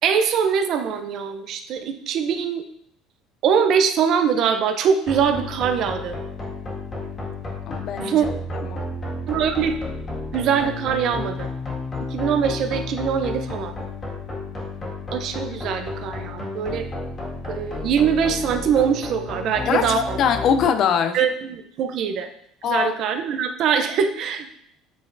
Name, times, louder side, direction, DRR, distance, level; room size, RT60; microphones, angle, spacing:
voice 1, 0.0-2.6 3.4-6.2 8.0-8.3 9.3-9.8 10.3-11.5 12.0-13.7 15.1-16.9 17.4-20.2 21.1-22.3 22.6-24.5, right 7 dB, 45° right, 8 dB, 0.6 m, -22 dB
sound 1, 5.1-20.7, left 3 dB, 20° left, 1.8 m, -32 dB
voice 2, 7.7-8.1 8.7-8.8 19.6-21.2 22.6-22.9, left 7 dB, 40° left, 9 dB, 0.5 m, -22 dB
8.3 x 5.2 x 2.6 m, 0.69 s
cardioid pair, 165°, 0 cm